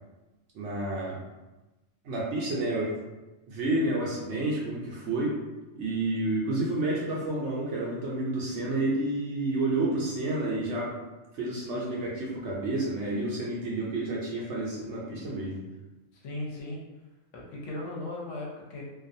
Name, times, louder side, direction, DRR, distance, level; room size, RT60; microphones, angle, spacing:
voice 1, 0.5-1.2 2.0-3.0 3.5-5.4 5.7-10.9 11.3-15.6, right 2 dB, 65° right, -4 dB, 0.8 m, -30 dB
voice 2, 16.1-16.8 17.3-18.8, left 2 dB, 70° left, -3 dB, 0.9 m, -37 dB
2.4 x 2.3 x 2.6 m, 1.1 s
omnidirectional pair, 1.5 m